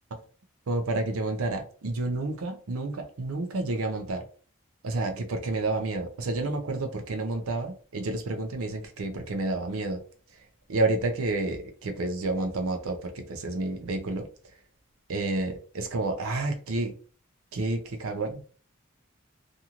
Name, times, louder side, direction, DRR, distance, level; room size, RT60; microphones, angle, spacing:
voice 1, 0.7-4.2 4.8-10.0 10.7-14.3 15.1-16.9 17.5-18.4, right 2 dB, 85° right, 0.6 m, -30 dB
2.9 x 2.6 x 2.4 m
head